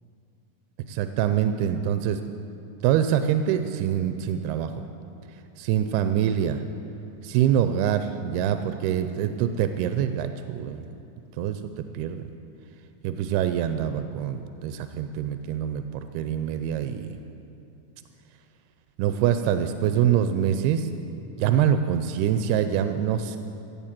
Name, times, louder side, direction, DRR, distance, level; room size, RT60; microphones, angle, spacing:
voice 1, 0.9-2.2 2.8-4.8 5.6-6.6 7.2-10.9 11.4-11.6 11.9-12.2 13.0-17.2 19.0-20.9 21.4-23.4, right 9 dB, 90° right, 9 dB, 2.5 m, -25 dB
17.0 x 7.0 x 7.4 m, 2.8 s
omnidirectional pair, 4.5 m